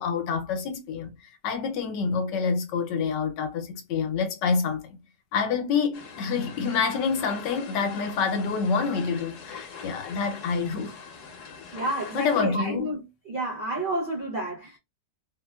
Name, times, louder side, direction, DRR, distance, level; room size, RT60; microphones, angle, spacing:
voice 1, 0.0-5.0 5.3-11.0 12.1-13.0, left 5 dB, 75° left, 1.3 m, -27 dB
sound 1, 5.9-12.4, left 5 dB, 55° left, 1.0 m, -43 dB
voice 2, 11.7-13.0 13.3-14.8, right 1 dB, 80° right, 0.4 m, -30 dB
3.9 x 2.2 x 2.2 m
omnidirectional pair, 1.9 m